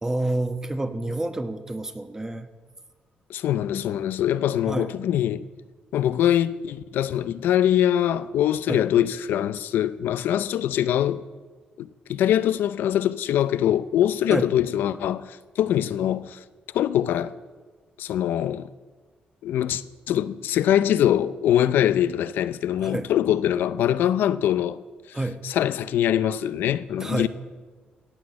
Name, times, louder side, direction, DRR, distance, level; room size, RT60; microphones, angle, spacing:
voice 1, 0.0-2.5 4.7-4.9 8.7-8.8 14.3-14.5 22.8-23.1 25.1-25.4 27.0-27.3, right 2 dB, 15° right, 1.1 m, -28 dB
voice 2, 3.3-5.5 5.9-11.2 11.8-16.4 16.7-17.3 18.0-18.7 19.4-19.8 20.1-24.8 25.1-25.2 25.4-27.3, left 11 dB, 85° left, 0.5 m, -23 dB
17.5 x 6.3 x 8.8 m
cardioid pair, 100°, 3 cm